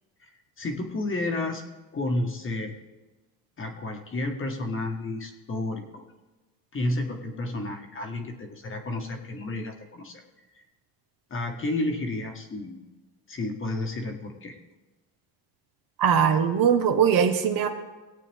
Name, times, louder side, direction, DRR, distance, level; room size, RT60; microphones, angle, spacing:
voice 1, 0.6-1.6 1.9-2.7 3.6-6.0 6.7-10.2 10.5-10.6 11.3-12.8 13.3-14.6, left 2 dB, 30° left, 4 dB, 1.5 m, -31 dB
voice 2, 16.0-17.7, right 7 dB, 50° right, 6 dB, 1.3 m, -21 dB
18.5 x 8.4 x 3.5 m, 1.2 s
cardioid pair, 110°, 44 cm